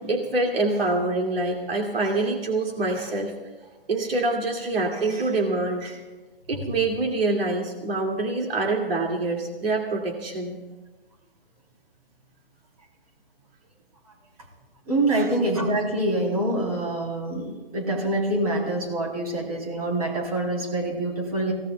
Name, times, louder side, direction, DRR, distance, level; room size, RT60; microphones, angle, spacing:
voice 1, 0.0-3.3 3.9-6.0 6.5-10.6 15.1-15.3, right 2 dB, 75° right, 0 dB, 2.4 m, -25 dB
voice 2, 14.9-21.5, right 1 dB, 40° right, -1 dB, 3.7 m, -25 dB
25.5 x 17.0 x 2.3 m, 1.2 s
hypercardioid pair, 180°, 29 cm